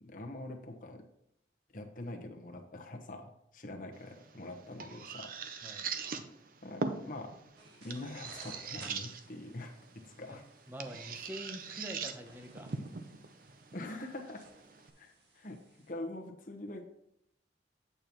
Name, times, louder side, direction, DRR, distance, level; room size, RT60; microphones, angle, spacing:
voice 1, 0.0-1.0 1.7-5.4 6.6-7.3 7.8-10.4 13.7-14.4 15.0-16.9, left 1 dB, 50° left, 2 dB, 1.1 m, -44 dB
sound 1, 3.9-14.9, right 5 dB, 50° right, 0.6 m, -43 dB
sound 2, 7.6-15.9, right 2 dB, 80° right, 1.7 m, -59 dB
voice 2, 10.0-10.4 10.7-12.8, equal, 10° right, 5 dB, 0.8 m, -45 dB
8.7 x 6.8 x 3.0 m, 0.77 s
head